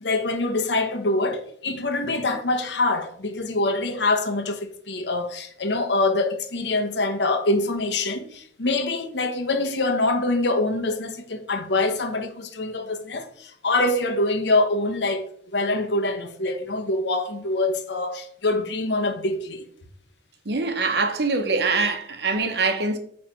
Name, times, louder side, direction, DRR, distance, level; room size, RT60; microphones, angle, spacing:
voice 1, 0.0-19.7, left 2 dB, 85° left, 0.9 m, -25 dB
voice 2, 20.5-23.0, right 3 dB, 70° right, 0.9 m, -23 dB
8.4 x 3.3 x 4.4 m
head